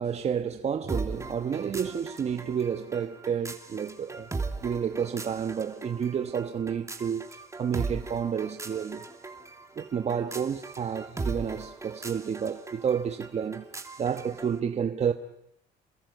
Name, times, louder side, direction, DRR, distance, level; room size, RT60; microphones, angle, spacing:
voice 1, 0.0-4.3 4.6-7.3 7.6-9.0 9.8-13.6 14.0-15.1, right 7 dB, 40° right, 1.2 m, -30 dB
sound 1, 0.9-14.6, right 3 dB, 15° right, 2.8 m, -39 dB
29.0 x 21.0 x 9.3 m
cardioid pair, 110°, 17 cm